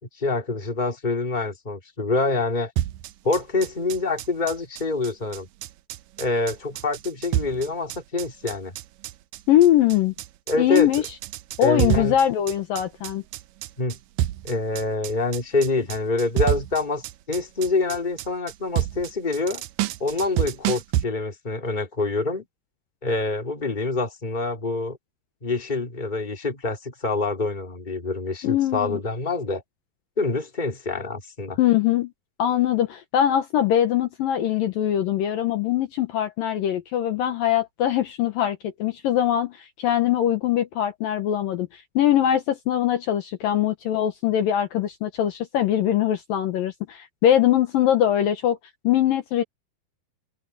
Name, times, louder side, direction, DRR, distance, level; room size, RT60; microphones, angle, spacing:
voice 1, 0.2-2.7 3.2-5.5 6.2-8.7 10.5-10.9 11.6-12.1 13.8-14.0 14.4-19.6 20.0-22.4 23.0-25.0 25.4-29.6 30.2-31.6, left 3 dB, 10° left, 2.8 m, -26 dB
sound 1, 2.8-21.0, right 13 dB, 90° right, 1.9 m, -29 dB
voice 2, 9.5-10.1 10.6-11.0 11.6-13.2 28.4-29.0 31.6-32.1 32.4-48.6 48.8-49.4, left 11 dB, 70° left, 2.6 m, -22 dB
omnidirectional pair, 4.6 m